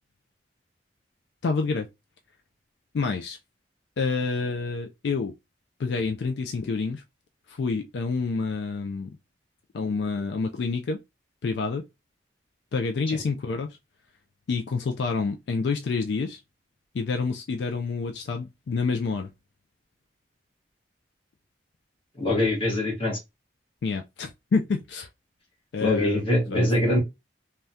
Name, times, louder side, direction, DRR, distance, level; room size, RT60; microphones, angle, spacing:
voice 1, 1.4-1.9 2.9-3.4 4.0-5.3 5.8-7.0 7.5-9.2 9.7-11.0 11.4-11.8 12.7-13.7 14.5-16.4 16.9-19.3 23.8-25.1 25.7-26.2 26.5-26.7, left 4 dB, 75° left, 0.4 m, -28 dB
voice 2, 22.2-23.2 25.8-27.0, left 1 dB, 35° left, 1.3 m, -23 dB
3.4 x 2.2 x 2.6 m
head